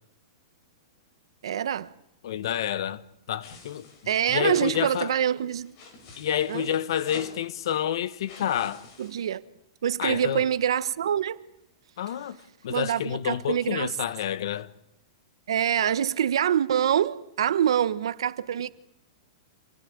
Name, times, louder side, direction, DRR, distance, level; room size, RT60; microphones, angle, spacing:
voice 1, 1.4-1.9 4.1-5.7 6.5-6.7 9.0-9.4 9.8-11.4 12.7-13.9 15.5-18.7, right 9 dB, 80° right, 1.2 m, -25 dB
voice 2, 2.2-3.8 4.3-5.1 6.2-8.9 10.0-10.5 12.0-12.4 12.6-14.7, left 10 dB, 65° left, 1.3 m, -29 dB
sound 1, 3.4-9.3, left 3 dB, 40° left, 6.2 m, -48 dB
27.0 x 17.5 x 9.6 m
supercardioid pair, 160°, 3 cm